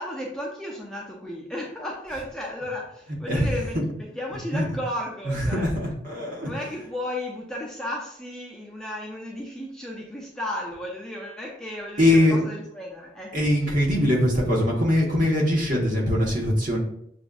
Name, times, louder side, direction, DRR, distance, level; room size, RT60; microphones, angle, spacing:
voice 1, 0.0-5.7 6.4-13.4, left 1 dB, 5° left, -3 dB, 0.5 m, -34 dB
voice 2, 3.3-3.8 4.5-4.6 5.2-6.5 12.0-12.4 13.3-16.8, left 1 dB, 45° right, -2 dB, 1.1 m, -22 dB
6.9 x 2.5 x 2.3 m, 0.71 s
head